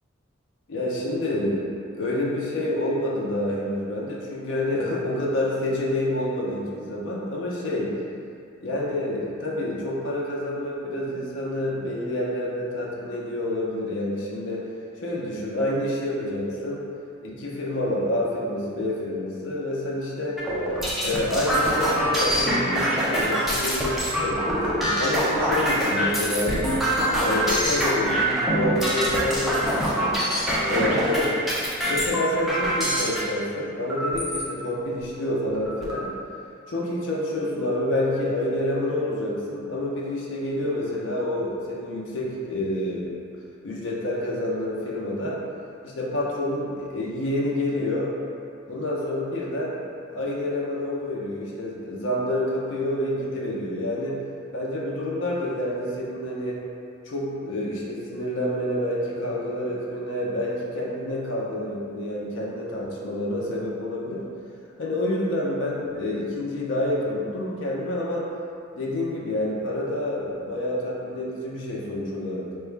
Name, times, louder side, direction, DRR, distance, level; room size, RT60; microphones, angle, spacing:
voice 1, 0.7-1.7 1.9-8.0 8.6-14.7 15.0-16.8 17.2-20.4 21.0-26.7 27.2-30.2 30.6-31.3 31.8-36.1 36.7-43.1 43.6-45.4 45.8-48.1 48.7-49.8 50.1-54.2 54.5-56.6 57.1-64.3 64.8-68.3 68.7-72.5, left 1 dB, 65° left, -4 dB, 0.5 m, -28 dB
sound 1, 20.4-33.2 33.9-34.4 35.0-35.1 35.4-36.0, equal, ahead, 0.4 m, -24 dB
3.7 x 2.1 x 3.2 m, 2.4 s
head